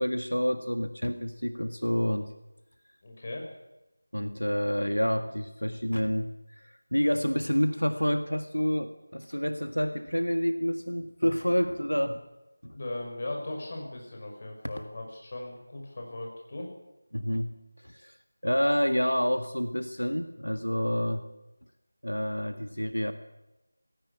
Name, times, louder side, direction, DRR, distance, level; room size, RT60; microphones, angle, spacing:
voice 1, 0.0-2.3 4.1-12.2 12.6-12.8 17.1-17.5 17.8-18.2 18.4-21.2 22.0-23.1, equal, 85° left, 9 dB, 1.8 m, -28 dB
voice 2, 3.0-3.5 12.7-16.7, left 2 dB, 30° left, 1 dB, 5.9 m, -38 dB
18.5 x 17.0 x 9.9 m, 0.95 s
figure-of-eight pair, 170°, 0 cm